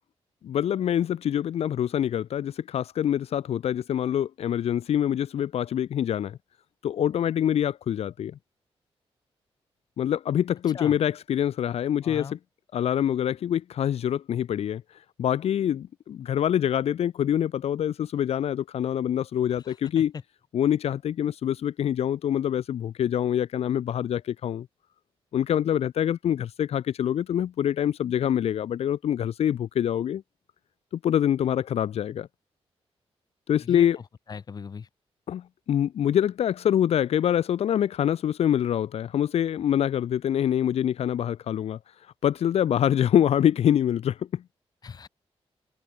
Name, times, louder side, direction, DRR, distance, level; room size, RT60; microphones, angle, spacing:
voice 1, 0.4-6.4 6.8-8.4 10.0-12.3 12.7-14.8 15.2-20.1 20.5-24.7 25.3-30.2 30.9-32.3 33.5-34.0 35.3-41.8 42.2-44.4, left 10 dB, 80° left, 0.9 m, -25 dB
voice 2, 12.0-12.4 19.6-20.2 33.6-34.9 44.8-45.1, left 6 dB, 40° left, 1.6 m, -39 dB
wide cardioid pair, 175°, 11 cm